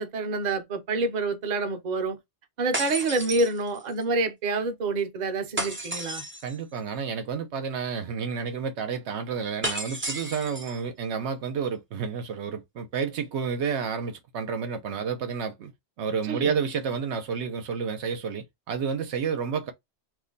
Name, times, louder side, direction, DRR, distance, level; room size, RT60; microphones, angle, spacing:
voice 1, 0.0-2.2 2.6-6.2 16.3-16.6, right 3 dB, 45° right, 0.7 m, -27 dB
sound 1, 2.7-4.0 5.6-6.6 9.6-10.8, right 1 dB, 15° right, 0.4 m, -33 dB
voice 2, 6.4-15.7 16.0-19.7, right 6 dB, 75° right, 0.9 m, -30 dB
2.5 x 2.1 x 3.7 m
omnidirectional pair, 1.2 m